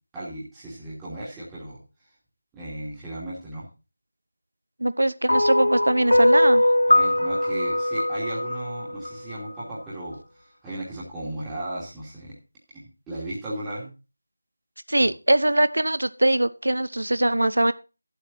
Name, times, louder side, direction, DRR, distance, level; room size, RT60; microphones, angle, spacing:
voice 1, 0.1-1.8 2.5-3.7 6.9-12.3 12.7-13.9 15.0-15.1, right 1 dB, 5° right, -10 dB, 2.6 m, -35 dB
voice 2, 4.8-6.6 14.9-17.7, right 1 dB, 75° right, 15 dB, 0.8 m, -22 dB
sound 1, 5.3-9.6, left 1 dB, 90° left, 1.4 m, -21 dB
12.0 x 8.1 x 4.1 m, 0.31 s
figure-of-eight pair, 170°, 0 cm